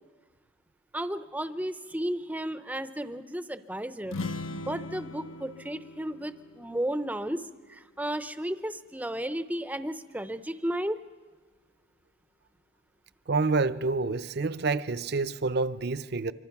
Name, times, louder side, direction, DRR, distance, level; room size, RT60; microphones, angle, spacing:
voice 1, 0.9-4.2 4.5-11.0, right 1 dB, 10° right, 0.6 m, -33 dB
sound 1, 4.0-7.8, left 3 dB, 80° left, 0.9 m, -40 dB
voice 2, 13.3-16.3, right 3 dB, 55° right, 0.6 m, -28 dB
25.5 x 24.5 x 5.9 m
head